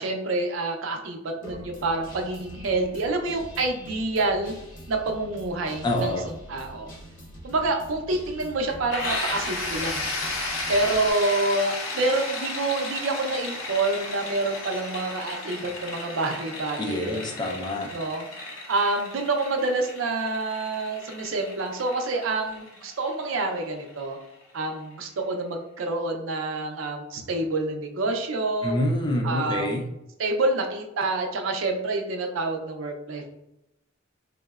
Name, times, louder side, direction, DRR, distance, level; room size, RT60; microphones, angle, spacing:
voice 1, 0.0-4.5 4.9-6.2 6.5-6.9 7.4-10.1 10.7-17.2 17.9-18.3 18.7-24.2 24.5-28.8 29.2-29.8 30.2-33.3, right 2 dB, 75° right, 3 dB, 0.5 m, -27 dB
Guitar, 1.4-11.1, right 1 dB, 45° left, 0.7 m, -44 dB
voice 2, 5.8-6.3 16.8-17.9 28.6-29.8, left 1 dB, 20° left, 1 dB, 0.4 m, -26 dB
sound 1, 8.9-24.5, left 2 dB, 80° left, 0.7 m, -34 dB
3.6 x 2.0 x 2.3 m, 0.85 s
head